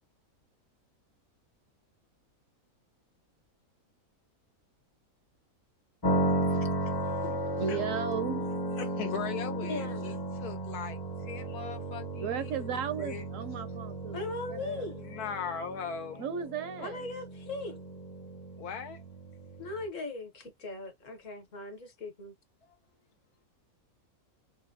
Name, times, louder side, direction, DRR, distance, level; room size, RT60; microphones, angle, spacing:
sound 1, 6.0-19.9, right 1 dB, 35° left, 0.4 m, -35 dB
voice 1, 6.5-7.8 8.8-10.2 10.4-13.3 15.0-16.2 18.6-19.0, left 7 dB, 85° left, 1.4 m, -40 dB
voice 2, 7.6-8.5 12.1-14.2 14.5-14.9 16.2-17.0, right 7 dB, 70° right, 0.9 m, -35 dB
voice 3, 9.7-10.0 14.1-15.1 16.8-17.8 19.6-22.3, left 3 dB, 60° left, 1.4 m, -39 dB
3.9 x 2.2 x 2.6 m
omnidirectional pair, 1.6 m